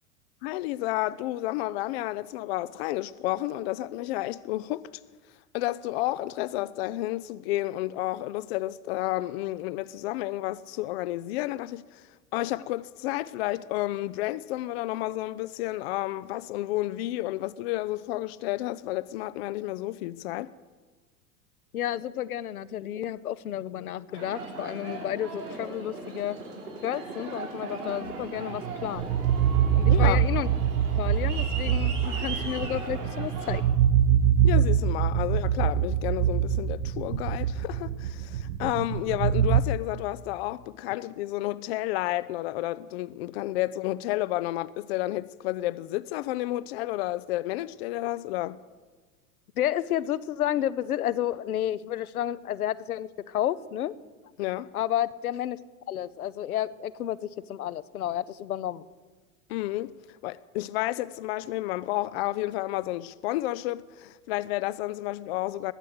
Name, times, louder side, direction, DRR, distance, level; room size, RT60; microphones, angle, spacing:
voice 1, 0.4-4.8 5.5-12.1 12.3-20.5 29.9-30.2 34.4-48.6 54.4-54.7 59.5-59.9 60.2-65.7, left 17 dB, 45° left, 0.5 m, -31 dB
voice 2, 21.7-26.4 26.8-29.1 29.8-30.5 31.0-33.6 49.6-53.9 54.7-55.6 55.9-58.8, left 11 dB, 70° left, 0.8 m, -31 dB
Aircraft, 24.2-33.6, right 3 dB, 85° right, 5.6 m, -38 dB
sound 1, 28.5-39.6, right 9 dB, 60° right, 0.9 m, -24 dB
20.5 x 7.7 x 8.1 m
figure-of-eight pair, 90°, 45 cm